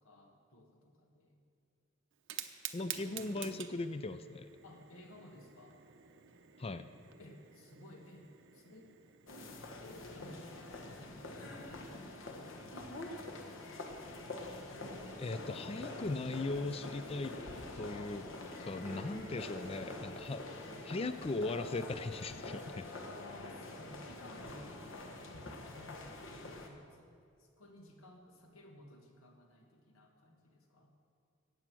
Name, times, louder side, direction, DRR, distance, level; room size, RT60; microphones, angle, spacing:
voice 1, 0.0-1.5 4.6-5.8 7.2-8.3 8.5-8.9 9.8-13.2 22.9-30.9, left 1 dB, 85° left, 2 dB, 2.0 m, -56 dB
Fire, 2.1-11.0, right 10 dB, 60° right, 0.8 m, -50 dB
voice 2, 2.7-4.5 6.6-6.9 15.2-17.3 17.7-18.3 18.6-22.9, left 3 dB, 30° left, 11 dB, 0.4 m, -39 dB
sound 1, 9.3-26.7, left 2 dB, 65° left, 1.4 m, -46 dB
sound 2, 18.9-25.6 25.9-26.0 26.2-26.3 27.1-27.2 27.4-28.6, right 1 dB, 30° right, 0.9 m, -56 dB
14.5 x 9.0 x 6.1 m, 2.4 s
head